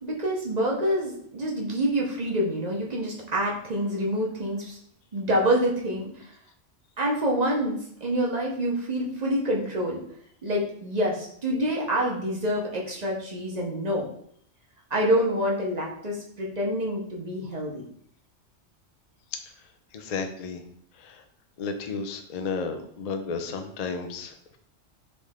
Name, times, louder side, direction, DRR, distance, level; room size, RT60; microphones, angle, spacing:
voice 1, 0.0-4.8 5.1-6.3 7.0-10.0 10.4-14.0 14.9-17.8, equal, 40° right, -2 dB, 0.8 m, -27 dB
voice 2, 19.3-20.6 20.9-21.2 21.6-24.6, left 5 dB, 60° left, 6 dB, 0.4 m, -33 dB
3.9 x 3.2 x 3.5 m, 0.66 s
omnidirectional pair, 1.2 m